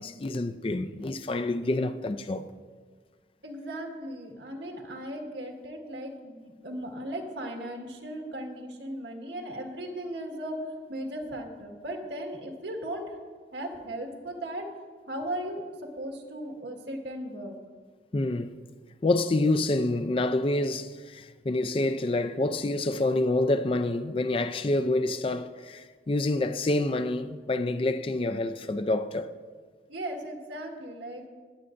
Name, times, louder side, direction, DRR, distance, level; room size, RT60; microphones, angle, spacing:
voice 1, 0.0-2.5 18.1-18.5 19.0-29.4, left 2 dB, 30° left, 0.4 m, -27 dB
voice 2, 3.4-13.2 13.5-14.7 15.1-17.6 29.9-31.2, right 1 dB, 85° right, 1.6 m, -37 dB
20.5 x 8.4 x 2.6 m
head